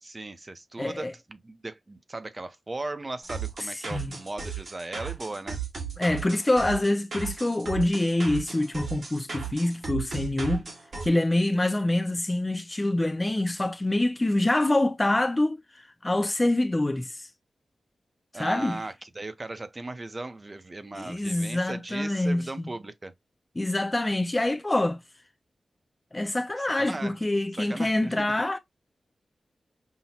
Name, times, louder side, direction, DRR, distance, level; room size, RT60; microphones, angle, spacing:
voice 1, 0.0-5.6 18.3-23.1 26.6-27.1 27.6-28.2, right 2 dB, 30° right, 0.5 m, -37 dB
voice 2, 0.8-1.1 3.9-4.2 6.0-10.6 11.0-17.3 18.3-18.8 20.9-22.5 23.6-25.0 26.1-28.6, left 1 dB, 20° left, 0.4 m, -26 dB
sound 1, 3.2-11.1, right 6 dB, 65° right, 1.6 m, -36 dB
5.6 x 2.1 x 2.8 m
wide cardioid pair, 110°, 0 cm